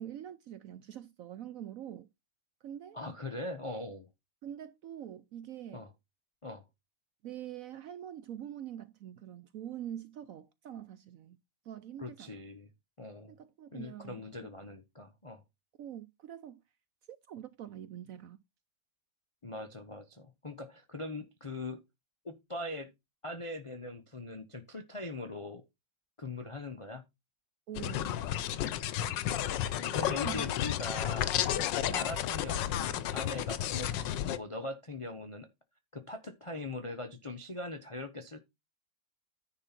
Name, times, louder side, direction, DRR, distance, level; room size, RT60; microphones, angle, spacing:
voice 1, 0.0-2.1 2.6-3.0 4.4-5.9 7.2-11.4 11.6-12.4 13.3-14.3 15.8-16.6 17.1-18.4 27.7-28.1 30.0-30.5 31.9-32.1, right 10 dB, 65° right, 0.8 m, -44 dB
voice 2, 2.9-4.1 5.7-5.9 6.4-6.7 12.0-12.7 13.0-13.3 13.7-15.4 19.4-21.8 22.2-22.9 23.2-25.6 26.2-27.0 29.9-31.4 31.9-35.5 35.9-38.4, left 2 dB, 40° left, 0.4 m, -41 dB
sound 1, 27.8-34.4, left 11 dB, 90° left, 1.4 m, -32 dB
9.9 x 3.8 x 5.9 m
omnidirectional pair, 1.9 m